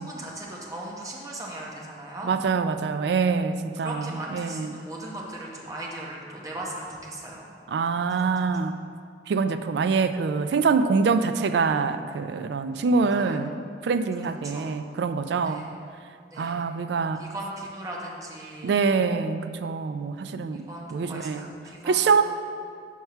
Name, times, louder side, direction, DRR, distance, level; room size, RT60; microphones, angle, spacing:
voice 1, 0.0-2.3 3.8-7.5 8.1-8.4 13.2-13.4 14.2-14.7 15.4-15.7 16.3-16.6 16.9-18.8 20.7-22.1, right 1 dB, 20° right, -3 dB, 0.9 m, -38 dB
voice 2, 2.2-4.8 7.7-8.8 9.3-13.6 13.8-15.7 16.4-17.2 18.6-21.5 21.8-22.2, right 5 dB, 70° right, 10 dB, 0.3 m, -25 dB
5.5 x 4.6 x 5.7 m, 2.2 s
head